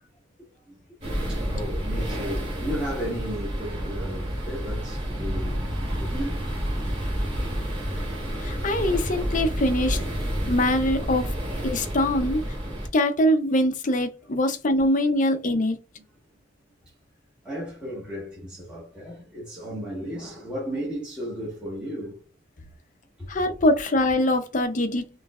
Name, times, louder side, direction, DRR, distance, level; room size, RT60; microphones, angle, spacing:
voice 1, 0.4-0.8 1.3-6.4 13.9-14.0 17.4-22.2 23.2-23.5, equal, 5° right, 1.3 m, -35 dB
sound 1, 1.0-12.9, equal, 35° right, 2.6 m, -29 dB
voice 2, 8.4-10.0 10.5-11.3 11.6-12.5 12.9-15.8 23.3-25.1, left 1 dB, 40° left, 0.6 m, -23 dB
5.6 x 3.2 x 2.4 m
head